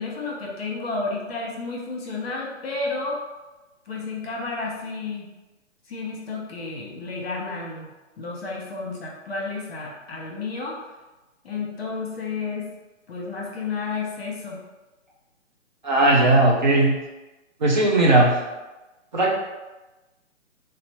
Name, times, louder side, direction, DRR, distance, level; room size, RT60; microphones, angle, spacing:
voice 1, 0.0-3.2 3.9-5.3 5.9-7.9 8.2-10.9 11.4-12.7 13.1-14.6, left 3 dB, 50° left, -1 dB, 0.9 m, -31 dB
voice 2, 15.8-17.0 17.6-18.4 19.1-19.3, right 2 dB, 40° right, -3 dB, 0.5 m, -17 dB
3.9 x 2.0 x 2.9 m, 1.1 s
hypercardioid pair, 150°, 38 cm